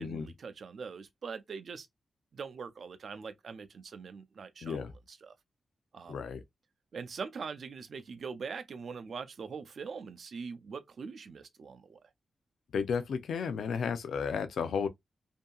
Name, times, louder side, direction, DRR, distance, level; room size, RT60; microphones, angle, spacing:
voice 1, 0.0-1.9 2.3-5.3 5.9-6.2 6.9-12.1, right 5 dB, 65° right, 0.5 m, -42 dB
voice 2, 4.6-4.9 6.1-6.4 12.7-14.9, left 6 dB, 90° left, 0.4 m, -33 dB
2.7 x 2.6 x 2.3 m
wide cardioid pair, 105°, 0 cm